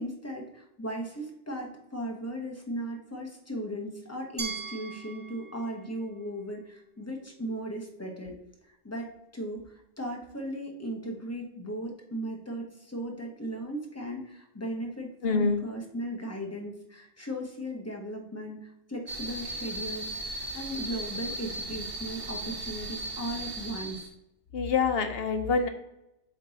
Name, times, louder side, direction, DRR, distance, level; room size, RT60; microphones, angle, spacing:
voice 1, 0.0-8.4 8.6-24.0, equal, 15° left, 0 dB, 1.0 m, -37 dB
Glass, 4.4-7.3, right 4 dB, 30° right, 0.7 m, -42 dB
voice 2, 15.2-15.6 24.5-25.7, left 4 dB, 60° left, 6 dB, 0.9 m, -26 dB
sound 1, 19.1-24.1, right 2 dB, 55° right, 1.2 m, -37 dB
7.4 x 3.4 x 4.1 m, 0.85 s
omnidirectional pair, 1.2 m